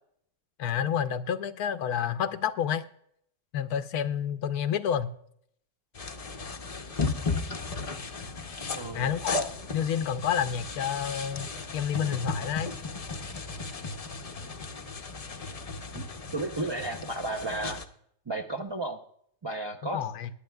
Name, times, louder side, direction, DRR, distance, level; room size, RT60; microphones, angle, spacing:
voice 1, 0.6-2.8 3.5-5.1 8.9-9.4 9.7-12.7 19.9-20.3, left 8 dB, 85° left, 10 dB, 1.1 m, -29 dB
sound 1, 5.9-17.9, left 4 dB, 40° left, 0.5 m, -35 dB
voice 2, 8.7-9.1 15.9-16.0 16.3-17.8 18.3-19.0 19.4-20.1, right 2 dB, 35° right, 1 dB, 0.4 m, -33 dB
20.0 x 10.0 x 2.2 m, 0.69 s
omnidirectional pair, 1.6 m